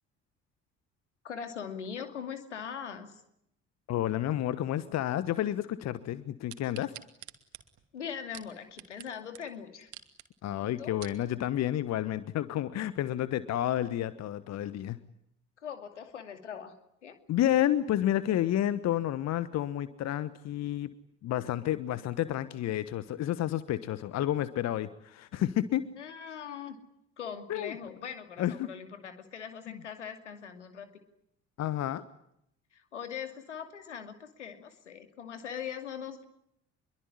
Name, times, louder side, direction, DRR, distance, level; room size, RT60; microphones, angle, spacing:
voice 1, 1.2-3.2 7.9-9.9 10.6-11.0 15.6-16.8 17.0-17.2 26.0-26.8 27.2-30.9 32.7-36.3, left 7 dB, 80° left, 8 dB, 2.5 m, -41 dB
voice 2, 3.9-6.9 10.4-15.0 17.3-20.9 21.2-25.8 27.5-27.7 28.4-28.7 29.7-29.8 31.6-32.0, left 12 dB, 45° left, 15 dB, 1.3 m, -30 dB
sound 1, 6.5-9.1 9.3-9.4 9.8-10.3 10.7-11.2 11.8-11.9, right 12 dB, 50° right, 2.6 m, -47 dB
26.0 x 23.0 x 9.9 m, 0.77 s
figure-of-eight pair, 50°, 35 cm